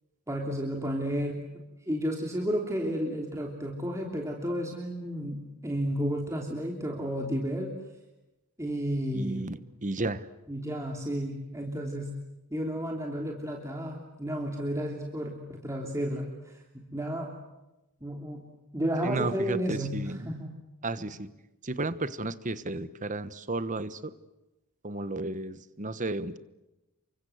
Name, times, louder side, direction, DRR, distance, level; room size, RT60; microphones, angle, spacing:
voice 1, 0.3-1.4 1.9-7.7 8.6-9.6 10.5-12.1 12.5-17.3 18.0-18.4 18.7-20.0 20.2-20.5, equal, 15° right, 1 dB, 3.1 m, -32 dB
voice 2, 9.1-10.3 19.0-20.3 20.8-21.3 21.6-24.1 24.8-26.4, right 2 dB, 35° right, 15 dB, 1.2 m, -33 dB
29.0 x 24.5 x 8.1 m, 0.99 s
head